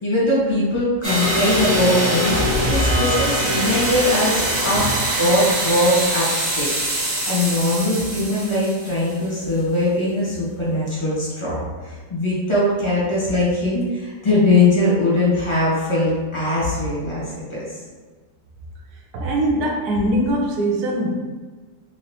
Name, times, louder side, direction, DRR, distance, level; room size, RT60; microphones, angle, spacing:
voice 1, 0.0-4.9 5.2-6.7 7.2-17.8, left 1 dB, 20° left, -7 dB, 1.0 m, -21 dB
sound 1, 1.0-9.3, equal, 25° right, 1.2 m, -23 dB
voice 2, 19.1-21.1, right 1 dB, 70° right, 0 dB, 1.1 m, -22 dB
3.9 x 3.1 x 2.8 m, 1.4 s
omnidirectional pair, 1.9 m